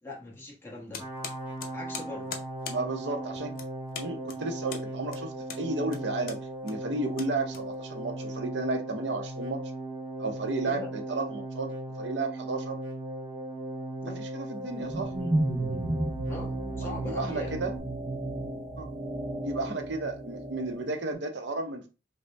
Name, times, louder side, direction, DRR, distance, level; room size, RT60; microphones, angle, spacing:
voice 1, 0.0-1.0 1.7-2.3 10.6-10.9 14.0-14.2 16.3-17.5, left 3 dB, 15° left, 1.1 m, -41 dB
sound 1, 0.9-8.1, left 6 dB, 55° left, 0.7 m, -43 dB
sound 2, 1.0-17.8, right 1 dB, 10° right, 1.0 m, -37 dB
voice 2, 2.7-3.5 4.0-9.6 10.2-11.7 12.0-12.8 14.2-15.1 16.8-17.7 18.8-18.9 19.4-21.9, right 3 dB, 90° right, 0.7 m, -33 dB
sound 3, 14.6-21.0, right 1 dB, 30° right, 0.5 m, -33 dB
5.1 x 2.1 x 3.3 m
head